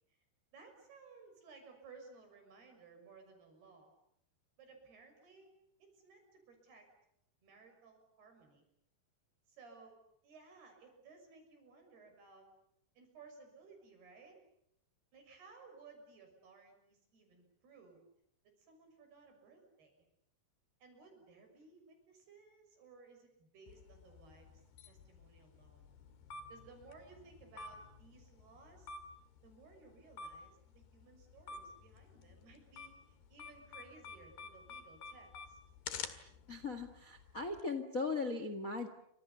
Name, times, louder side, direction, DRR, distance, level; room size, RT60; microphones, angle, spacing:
voice 1, 0.5-3.9 4.6-6.9 7.4-8.7 9.5-10.0 10.2-12.5 13.0-14.4 15.1-18.0 18.6-20.1 20.8-24.5 24.8-25.8 26.5-28.9 29.4-35.6, right 4 dB, 75° right, 4 dB, 8.4 m, -59 dB
sound 1, 23.7-37.6, left 5 dB, 80° left, 4.0 m, -51 dB
voice 2, 36.5-38.9, left 3 dB, 35° left, 8 dB, 1.4 m, -38 dB
29.5 x 26.0 x 7.0 m, 0.74 s
omnidirectional pair, 4.6 m